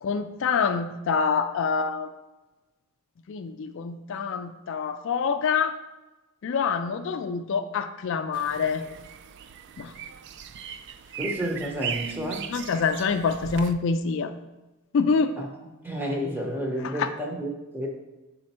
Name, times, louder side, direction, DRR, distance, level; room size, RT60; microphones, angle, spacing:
voice 1, 0.0-2.1 3.3-5.8 6.4-8.8 9.8-9.9 12.5-14.3 14.9-15.3 16.8-17.1, left 5 dB, 60° left, 8 dB, 0.3 m, -26 dB
sound 1, 8.3-13.7, right 7 dB, 55° right, 0.3 m, -38 dB
voice 2, 11.2-12.5 15.4-15.5 15.8-17.9, equal, 10° right, 0 dB, 0.9 m, -30 dB
6.3 x 4.3 x 4.3 m, 1.1 s
head